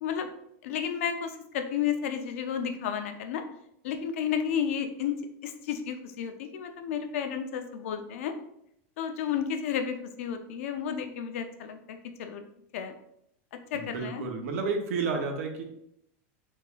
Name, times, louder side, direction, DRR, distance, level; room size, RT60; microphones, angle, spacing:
voice 1, 0.6-3.5 3.8-8.3 9.0-12.4 12.7-12.9 13.7-14.2, left 8 dB, 75° left, 7 dB, 0.5 m, -32 dB
voice 2, 13.7-15.6, right 4 dB, 75° right, 4 dB, 0.7 m, -31 dB
3.5 x 3.1 x 2.3 m, 0.75 s
supercardioid pair, 175°, 7 cm